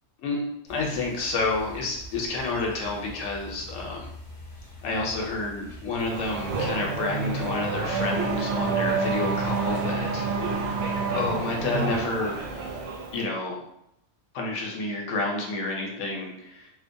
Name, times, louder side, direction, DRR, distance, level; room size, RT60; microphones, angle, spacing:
voice 1, 0.2-4.1 4.8-10.8 11.1-12.4 13.1-13.6 14.3-16.7, left 3 dB, 90° left, 0 dB, 1.0 m, -30 dB
sound 1, 0.7-6.7, equal, 40° left, 0.5 m, -44 dB
Race car auto racing / Accelerating revving vroom, 6.0-13.2, right 4 dB, 70° right, 0.8 m, -28 dB
2.4 x 2.2 x 2.5 m, 0.80 s
omnidirectional pair, 1.3 m